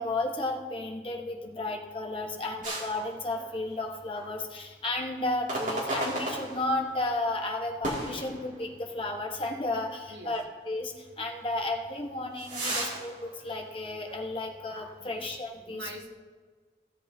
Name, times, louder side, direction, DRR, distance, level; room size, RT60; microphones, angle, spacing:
voice 1, 0.0-15.9, left 2 dB, 30° left, 1 dB, 1.0 m, -33 dB
sound 1, 2.6-3.8 4.1-4.3 5.5-7.0 7.8-9.0 9.4-9.5 10.2-10.3 11.7-14.4 14.7-14.9, right 1 dB, 45° right, 2.3 m, -35 dB
voice 2, 15.7-16.1, right 1 dB, 90° right, 0 dB, 1.6 m, -44 dB
16.0 x 8.0 x 2.7 m, 1.5 s
head